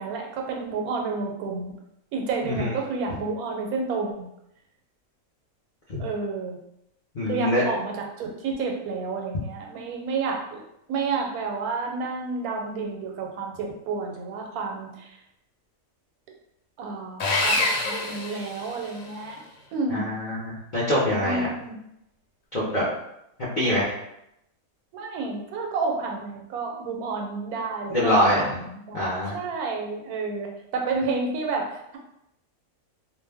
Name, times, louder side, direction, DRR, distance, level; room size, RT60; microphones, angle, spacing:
voice 1, 0.0-1.8 2.1-4.3 6.0-6.6 7.2-10.6 10.9-15.1 16.8-19.4 19.7-20.1 21.2-21.8 24.9-32.0, right 4 dB, 90° right, 1 dB, 1.1 m, -30 dB
voice 2, 7.1-7.6 19.9-21.5 22.5-22.9 23.6-23.9 27.9-28.5 28.9-29.4, left 1 dB, 45° left, -9 dB, 0.7 m, -24 dB
Sawing, 17.2-19.1, left 2 dB, 75° left, 1.0 m, -26 dB
2.5 x 2.1 x 3.3 m, 0.82 s
omnidirectional pair, 1.5 m